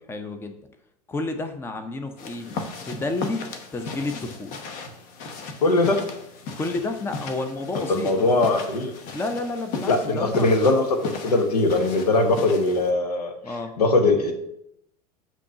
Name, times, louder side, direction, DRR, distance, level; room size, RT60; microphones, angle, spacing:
voice 1, 0.1-0.6 1.1-2.5 2.9-3.4 3.7-4.6 6.6-8.4 9.1-10.5 13.4-13.7, left 2 dB, 10° left, 7 dB, 0.6 m, -30 dB
sound 1, 2.2-12.9, left 4 dB, 40° left, 0.9 m, -37 dB
voice 2, 5.6-6.0 7.8-8.9 9.9-13.3 13.8-14.3, left 2 dB, 70° left, 6 dB, 1.1 m, -21 dB
8.3 x 3.0 x 5.6 m, 0.78 s
figure-of-eight pair, 80°, 21 cm